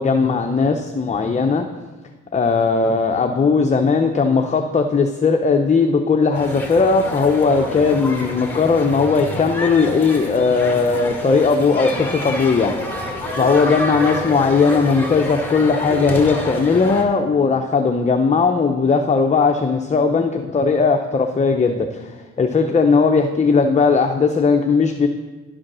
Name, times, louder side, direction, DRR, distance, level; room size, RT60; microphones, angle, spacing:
voice 1, 0.0-1.7 2.3-12.8 13.3-25.1, left 4 dB, 25° left, 4 dB, 0.6 m, -18 dB
sound 1, 6.3-17.0, left 1 dB, 5° left, 1.7 m, -29 dB
10.5 x 5.0 x 6.2 m, 1.3 s
cardioid pair, 90°, 30 cm